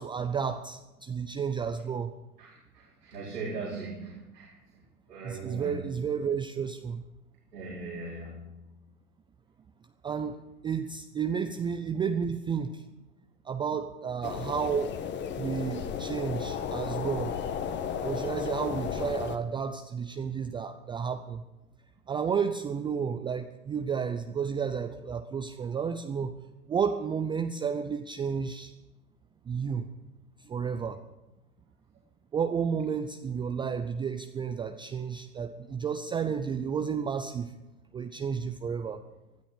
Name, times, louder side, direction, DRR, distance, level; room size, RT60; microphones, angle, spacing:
voice 1, 0.0-2.1 5.2-7.0 10.0-12.8 13.4-14.9 15.4-17.3 18.0-21.4 22.1-26.3 26.7-28.7 29.5-29.8 30.4-31.0 32.3-37.5 37.9-39.0, right 6 dB, 10° right, 7 dB, 0.5 m, -31 dB
voice 2, 2.4-4.5 5.1-5.8 7.5-8.6, right 3 dB, 85° right, -6 dB, 4.7 m, -39 dB
sound 1, 14.2-19.4, left 7 dB, 25° left, 1.3 m, -34 dB
19.5 x 12.5 x 5.1 m, 1.0 s
hypercardioid pair, 110°, 45 cm